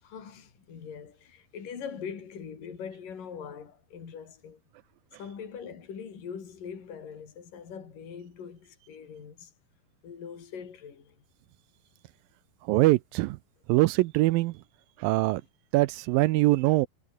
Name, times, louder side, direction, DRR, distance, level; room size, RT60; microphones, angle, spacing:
voice 1, 0.0-4.6 5.2-9.5 10.0-11.2, left 7 dB, 60° left, 5.4 m, -42 dB
voice 2, 12.7-13.4 13.7-14.5 15.0-15.4 15.7-16.9, right 19 dB, 80° right, 2.2 m, -23 dB
omnidirectional pair, 4.5 m